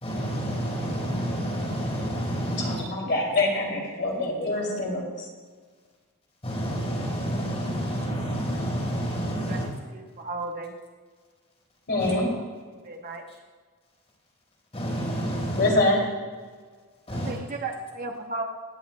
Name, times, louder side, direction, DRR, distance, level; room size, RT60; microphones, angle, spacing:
voice 1, 0.0-2.8 6.4-9.7 12.0-12.1 13.3-13.4 14.7-15.7 17.1-17.4, equal, 30° left, -2 dB, 3.9 m, -29 dB
voice 2, 2.6-5.3 11.9-12.3 15.5-16.0, left 2 dB, 50° left, -2 dB, 2.6 m, -25 dB
voice 3, 9.9-10.8 12.1-12.3 12.8-13.2 17.1-18.4, right 3 dB, 40° right, 2 dB, 1.0 m, -35 dB
23.0 x 9.3 x 2.2 m, 1.5 s
head